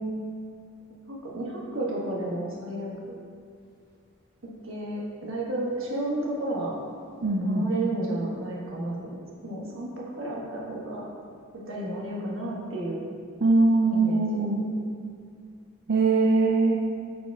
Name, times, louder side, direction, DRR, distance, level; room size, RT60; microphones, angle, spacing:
voice 1, 1.1-3.2 4.4-6.7 7.4-11.1 11.5-13.0 13.9-14.7, right 1 dB, 75° right, -4 dB, 1.4 m, -32 dB
voice 2, 7.2-7.7 13.4-14.6 15.9-16.8, right 3 dB, 55° right, -2 dB, 0.5 m, -22 dB
8.7 x 5.0 x 2.4 m, 2.3 s
head